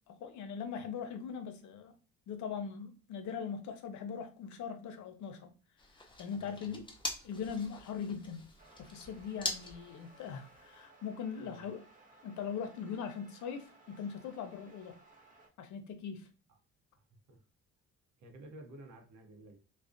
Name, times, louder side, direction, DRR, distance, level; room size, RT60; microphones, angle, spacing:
voice 1, 0.1-1.9 2.3-5.5 6.0-6.9 7.2-8.4 8.8-11.8 12.2-15.0 15.6-16.3, left 6 dB, 70° left, 0.5 m, -41 dB
sound 1, 5.8-10.9, left 2 dB, 15° left, 0.5 m, -44 dB
voice 2, 6.3-6.8 11.4-11.7 16.5-16.6 17.3-17.4 18.2-19.6, right 1 dB, 70° right, 0.7 m, -53 dB
sound 2, 8.6-15.5, right 2 dB, 25° right, 0.6 m, -60 dB
2.4 x 2.1 x 2.4 m
cardioid pair, 90°, 30 cm